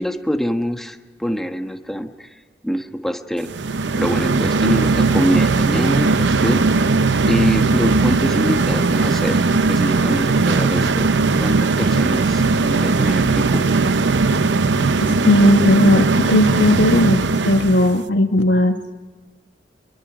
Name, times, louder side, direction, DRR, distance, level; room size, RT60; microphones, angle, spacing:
voice 1, 0.0-2.3 2.6-3.5 4.0-6.9 7.2-11.1 11.4-13.6, equal, ahead, 5 dB, 1.3 m, -24 dB
sound 1, 3.5-18.0, right 3 dB, 80° right, 0.7 m, -18 dB
voice 2, 15.0-18.8, left 1 dB, 85° left, 4 dB, 2.0 m, -16 dB
27.0 x 22.5 x 5.0 m, 1.4 s
head